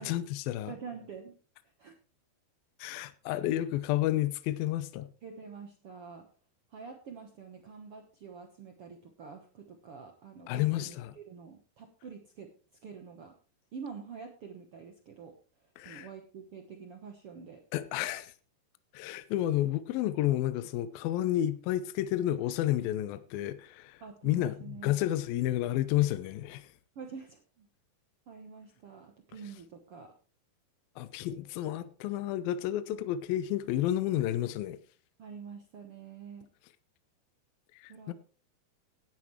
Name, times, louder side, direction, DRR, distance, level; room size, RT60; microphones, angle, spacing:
voice 1, 0.0-0.7 2.8-5.1 10.5-11.1 15.8-16.1 17.7-18.3 18.9-26.7 31.0-34.8 37.8-38.1, left 13 dB, 75° left, 2.4 m, -31 dB
voice 2, 0.7-1.3 1.8-1.9 5.2-6.3 6.7-12.5 12.8-13.4 13.7-15.3 15.6-17.6 24.0-24.9 26.9-27.7 28.3-30.1 32.9-33.0 35.2-36.5 37.9-38.1, right 5 dB, 70° right, 1.3 m, -46 dB
17.0 x 11.0 x 3.2 m
omnidirectional pair, 4.5 m